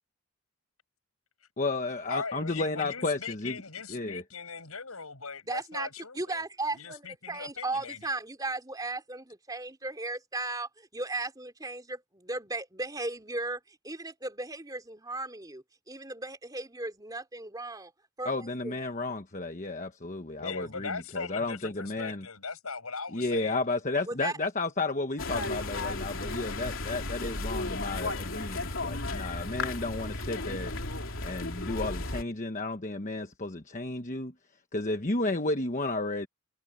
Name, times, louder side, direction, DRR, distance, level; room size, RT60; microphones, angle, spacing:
voice 1, 1.6-3.6 3.9-4.2 18.2-22.3 23.1-30.7 31.2-34.3 34.7-36.3, left 2 dB, 35° left, 1.2 m, -32 dB
voice 2, 2.1-6.4 6.7-8.1 20.4-23.6, left 5 dB, 80° left, 6.2 m, -39 dB
voice 3, 5.5-5.9 6.1-17.9 18.2-18.7 24.1-24.4, right 2 dB, 15° right, 3.4 m, -36 dB
sound 1, 25.2-32.2, left 2 dB, 60° left, 3.3 m, -34 dB
head